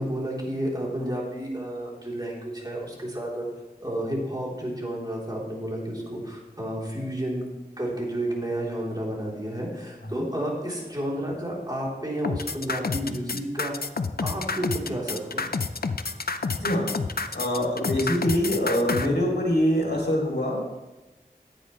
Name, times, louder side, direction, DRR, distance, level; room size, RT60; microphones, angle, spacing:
voice 1, 0.0-3.5 3.8-7.4 7.8-13.9 14.2-15.5 18.4-18.5, right 1 dB, 25° right, -4 dB, 3.5 m, -31 dB
sound 1, 12.2-19.1, left 4 dB, 65° left, 0.6 m, -28 dB
voice 2, 17.3-20.6, equal, 80° left, -2 dB, 2.8 m, -24 dB
14.0 x 9.7 x 3.2 m, 1.1 s
wide cardioid pair, 45°, 17 cm